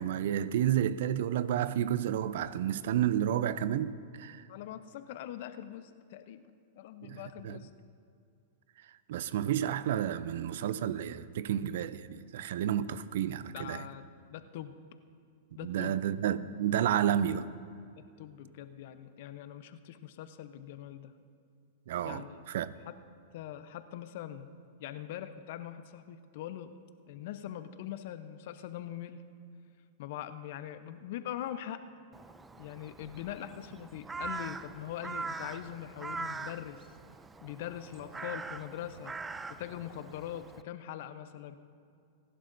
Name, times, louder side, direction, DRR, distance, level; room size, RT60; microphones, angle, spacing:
voice 1, 0.0-4.4 7.0-7.6 9.1-13.8 15.6-17.5 21.9-22.7, right 10 dB, 70° right, 0.5 m, -31 dB
voice 2, 4.5-6.4 6.8-7.7 13.5-14.7 15.6-16.0 18.0-21.1 22.0-22.4 22.9-23.0 23.3-24.5 24.8-26.7 27.1-29.2 30.0-31.8 32.6-36.8 37.4-39.1 39.5-41.6, left 11 dB, 60° left, 0.8 m, -42 dB
Crow, 32.1-40.6, right 4 dB, 15° right, 0.4 m, -43 dB
27.5 x 11.0 x 2.7 m
hypercardioid pair, 115°, 0 cm